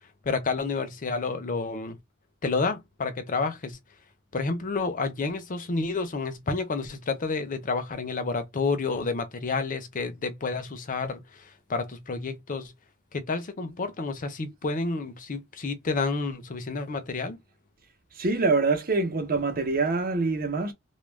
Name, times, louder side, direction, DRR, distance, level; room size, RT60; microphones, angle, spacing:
voice 1, 0.2-2.0 2.4-3.8 4.3-12.7 13.1-17.4, left 4 dB, 40° left, 0.5 m, -30 dB
voice 2, 18.1-20.7, right 3 dB, 45° right, 0.8 m, -25 dB
2.3 x 2.1 x 3.2 m
head